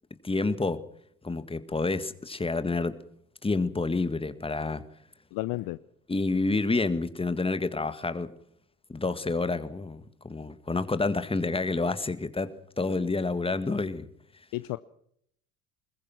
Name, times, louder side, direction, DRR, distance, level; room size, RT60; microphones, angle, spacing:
voice 1, 0.2-0.8 1.2-3.0 3.4-4.8 6.1-8.3 8.9-12.5 12.8-14.1, left 3 dB, 10° left, 1.8 m, -28 dB
voice 2, 5.3-5.8 14.5-14.8, left 19 dB, 45° left, 0.8 m, -31 dB
25.0 x 21.5 x 6.0 m
figure-of-eight pair, 65°, 48 cm